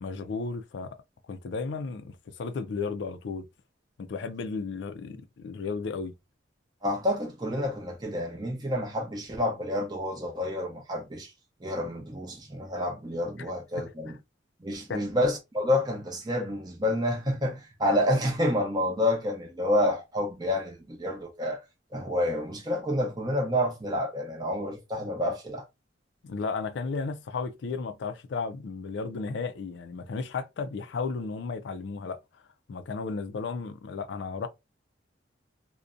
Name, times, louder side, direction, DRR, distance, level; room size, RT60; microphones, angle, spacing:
voice 1, 0.0-1.0 1.2-3.5 4.0-6.1 13.4-13.5 14.1-14.2 14.9-15.1 26.2-32.4 32.7-34.5, left 4 dB, 65° left, 0.4 m, -34 dB
voice 2, 6.8-11.3 11.6-14.2 14.6-21.6 21.9-25.6, left 1 dB, 20° right, 0.6 m, -29 dB
2.5 x 2.1 x 2.4 m
head